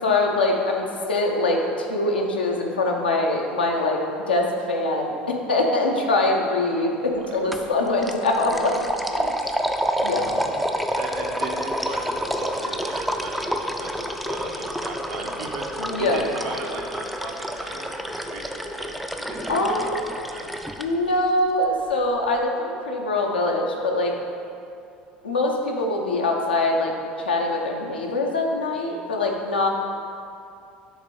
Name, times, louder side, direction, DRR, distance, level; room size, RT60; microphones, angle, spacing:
voice 1, 0.0-4.0 4.3-8.8 9.1-9.3 10.0-10.2 15.8-16.3 19.5-20.0 20.8-24.1 25.2-26.9 27.2-29.7, left 2 dB, 85° left, 0 dB, 0.7 m, -23 dB
voice 2, 6.8-7.3 7.6-8.0 10.0-19.9 20.3-20.5 28.8-29.0, right 3 dB, 70° right, -1 dB, 1.0 m, -37 dB
sound 1, 7.5-7.7 8.0-20.9, equal, ahead, 0.4 m, -29 dB
6.3 x 3.6 x 5.2 m, 2.5 s
figure-of-eight pair, 70°, 5 cm